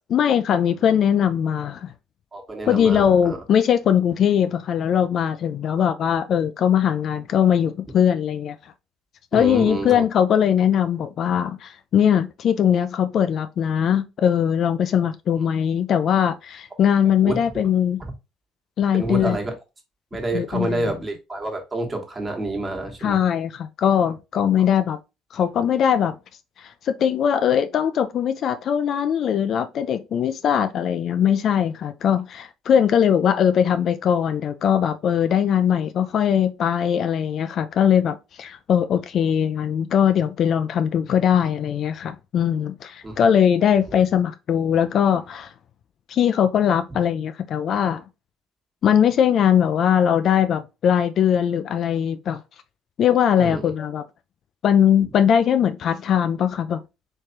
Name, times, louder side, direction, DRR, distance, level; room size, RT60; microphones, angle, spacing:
voice 1, 0.1-1.9 2.7-8.6 9.3-18.0 18.8-19.4 20.3-20.9 23.0-25.0 25.3-26.2 26.6-45.5 46.1-48.0 48.8-52.4 53.0-54.0 54.6-56.8, left 8 dB, 50° left, 0.3 m, -20 dB
voice 2, 2.3-3.4 5.8-5.9 9.3-10.0 17.2-17.4 18.9-19.5 20.1-23.2 43.0-43.2 53.4-53.6, right 2 dB, 25° right, 1.3 m, -28 dB
3.2 x 3.2 x 2.7 m
hypercardioid pair, 60°, 0 cm